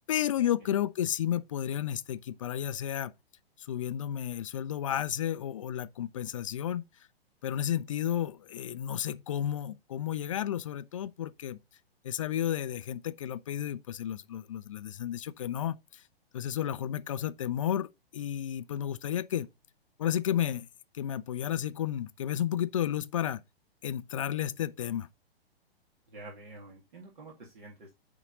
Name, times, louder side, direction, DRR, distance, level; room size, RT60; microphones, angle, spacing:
voice 1, 0.1-3.1 3.7-6.8 7.4-11.6 12.0-16.0 16.3-19.5 20.0-20.7 20.9-23.4 23.8-25.1, left 10 dB, 35° left, 0.4 m, -32 dB
voice 2, 26.1-27.9, right 2 dB, 55° right, 2.2 m, -48 dB
9.6 x 3.6 x 4.0 m
figure-of-eight pair, 115°, 31 cm